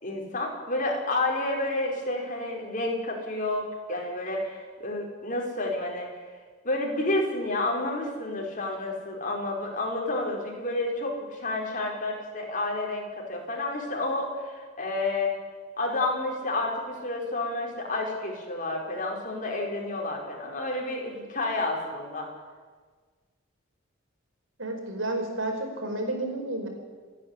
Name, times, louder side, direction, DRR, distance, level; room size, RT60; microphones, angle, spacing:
voice 1, 0.0-6.1 6.6-15.3 15.8-22.3, left 2 dB, 40° left, 0 dB, 4.7 m, -30 dB
voice 2, 24.6-26.7, right 1 dB, 80° right, 3 dB, 5.1 m, -31 dB
28.5 x 10.5 x 9.8 m, 1.5 s
head